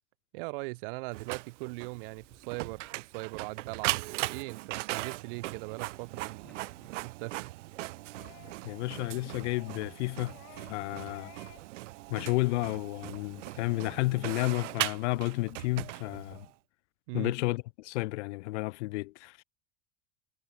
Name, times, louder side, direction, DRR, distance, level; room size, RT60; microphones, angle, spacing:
voice 1, 0.3-7.5 17.1-17.3, right 28 dB, 50° right, 0.7 m, -40 dB
Printer, 1.1-16.5, right 19 dB, 80° right, 1.4 m, -39 dB
sound 1, 2.1-15.2, left 1 dB, ahead, 6.8 m, -68 dB
sound 2, 8.1-8.6 8.9-9.2 9.5-9.9 10.3-10.8 11.1-11.7 12.0-12.2, left 34 dB, 50° left, 2.7 m, -55 dB
voice 2, 8.6-10.4 10.7-11.3 12.1-16.5 17.1-19.4, left 21 dB, 70° left, 0.8 m, -32 dB
supercardioid pair, 175°, 36 cm